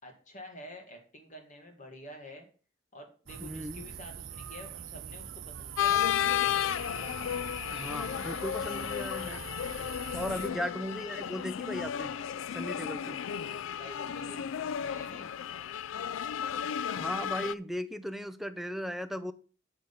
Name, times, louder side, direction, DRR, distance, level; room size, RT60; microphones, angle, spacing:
voice 1, 0.0-2.5 2.9-6.0 10.3-10.6 13.8-15.3, left 1 dB, 40° left, 3 dB, 2.2 m, -48 dB
sound 1, 3.3-10.5, right 7 dB, 75° right, 0.7 m, -43 dB
voice 2, 3.4-3.8 7.7-9.4 10.1-12.1 12.5-13.2 16.9-19.3, equal, ahead, 10 dB, 0.5 m, -37 dB
sound 2, 5.8-17.5, left 9 dB, 75° left, 0.3 m, -33 dB
7.9 x 6.3 x 5.5 m, 0.39 s
head